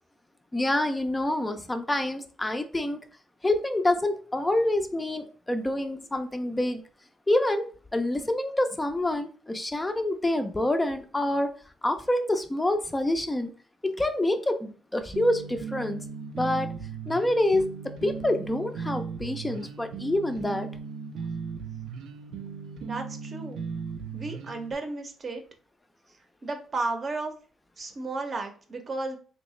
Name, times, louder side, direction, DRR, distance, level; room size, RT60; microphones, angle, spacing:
voice 1, 0.5-3.0 3.4-6.8 7.3-11.5 11.8-13.5 13.8-16.1 16.4-16.7 17.1-20.7, left 1 dB, 15° left, 0.4 m, -27 dB
sound 1, 15.1-24.7, right 5 dB, 80° right, 0.5 m, -37 dB
voice 2, 22.8-23.6 24.1-25.4 26.4-27.3 27.8-29.2, right 3 dB, 40° right, 0.7 m, -33 dB
3.1 x 2.8 x 3.1 m
cardioid pair, 90°, 0 cm